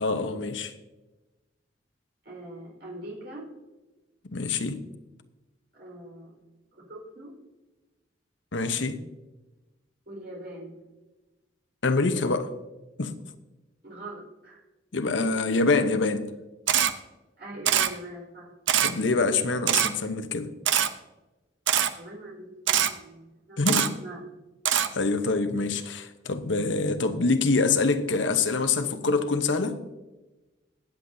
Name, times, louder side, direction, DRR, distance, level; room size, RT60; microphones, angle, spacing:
voice 1, 0.0-0.7 4.2-4.8 8.5-9.0 11.8-12.5 13.0-13.1 14.9-16.3 18.8-20.5 23.6-24.0 24.9-29.8, left 3 dB, 85° left, 0.9 m, -25 dB
voice 2, 2.2-3.5 5.7-6.3 6.7-7.3 10.1-10.8 13.8-14.6 17.4-18.5 21.9-23.6 24.0-24.2, right 1 dB, 60° right, 4.4 m, -42 dB
Camera, 16.7-16.9 17.7-17.9 18.7-18.9 19.7-19.9 20.7-20.9 21.7-21.9 22.7-22.9 23.7-23.9 24.7-24.9, right 9 dB, 85° right, 0.7 m, -22 dB
21.5 x 7.9 x 2.7 m
head